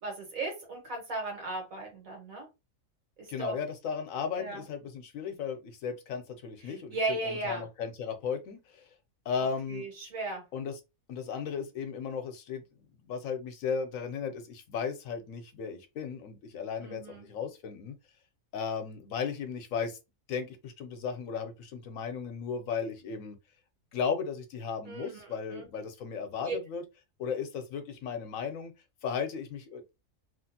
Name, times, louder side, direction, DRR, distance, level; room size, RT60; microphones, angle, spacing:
voice 1, 0.0-2.5 3.2-3.6 4.4-4.6 6.6-7.6 9.4-10.4 16.8-17.3 24.9-25.7 26.4-26.6, right 2 dB, 75° right, 1.8 m, -36 dB
voice 2, 3.3-8.9 9.3-9.9 10.5-10.7 11.1-12.6 13.0-17.9 18.5-20.0 20.3-23.4 23.9-26.8 27.2-28.7 29.0-29.9, left 6 dB, 75° left, 1.0 m, -35 dB
3.1 x 2.5 x 2.7 m
omnidirectional pair, 1.5 m